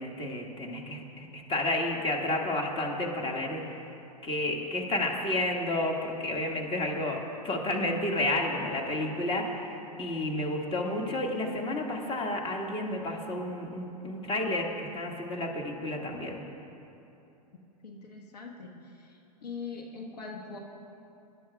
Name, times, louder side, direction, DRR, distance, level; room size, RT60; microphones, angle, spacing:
voice 1, 0.0-3.8 4.2-16.4, left 1 dB, 25° left, 0 dB, 2.0 m, -31 dB
voice 2, 17.8-18.7 19.1-20.6, left 5 dB, 75° left, 0 dB, 1.5 m, -42 dB
25.5 x 12.5 x 2.4 m, 2.9 s
hypercardioid pair, 100°, 21 cm